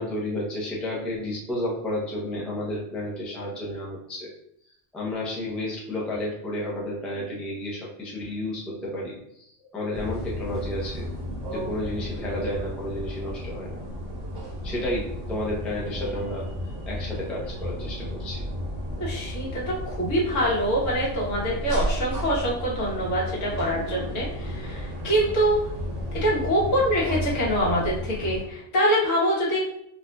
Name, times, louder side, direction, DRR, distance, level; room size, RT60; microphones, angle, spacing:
voice 1, 0.0-4.3 4.9-11.1 11.5-13.8 14.6-18.4, left 1 dB, ahead, -5 dB, 0.4 m, -32 dB
sound 1, 9.9-28.4, equal, 35° right, 0.9 m, -33 dB
voice 2, 19.0-25.7 26.1-29.6, equal, 80° left, -5 dB, 1.4 m, -25 dB
4.0 x 2.4 x 2.2 m, 0.74 s
omnidirectional pair, 1.3 m